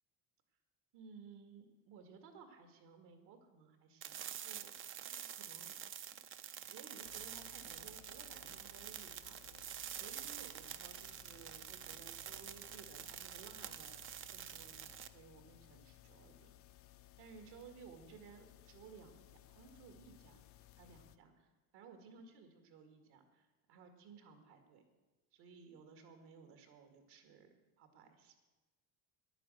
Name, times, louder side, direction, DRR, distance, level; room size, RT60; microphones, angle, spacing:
voice 1, 0.9-4.7 5.1-5.7 6.7-14.0 14.3-16.5 17.2-20.4 20.8-24.8 25.3-28.4, right 5 dB, 70° right, 6 dB, 2.1 m, -58 dB
sound 1, 4.0-15.1, right 10 dB, 30° right, 0.4 m, -48 dB
sound 2, 7.0-21.2, left 13 dB, 35° left, 0.4 m, -62 dB
10.0 x 9.7 x 7.8 m, 1.2 s
cardioid pair, 165°, 42 cm